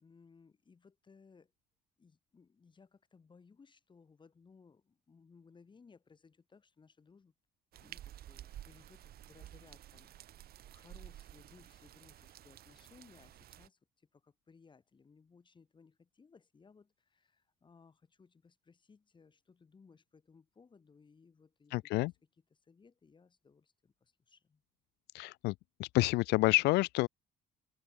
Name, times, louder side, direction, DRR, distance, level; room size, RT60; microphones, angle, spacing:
voice 1, 0.0-1.5 2.0-7.3 7.8-21.7 22.0-22.1 22.5-24.6, left 5 dB, 30° left, 4.1 m, -62 dB
sound 1, 7.7-13.7, right 12 dB, 65° right, 5.1 m, -52 dB
voice 2, 21.7-22.1 25.1-25.5 25.8-27.1, left 21 dB, 80° left, 0.4 m, -28 dB
cardioid pair, 110°, 17 cm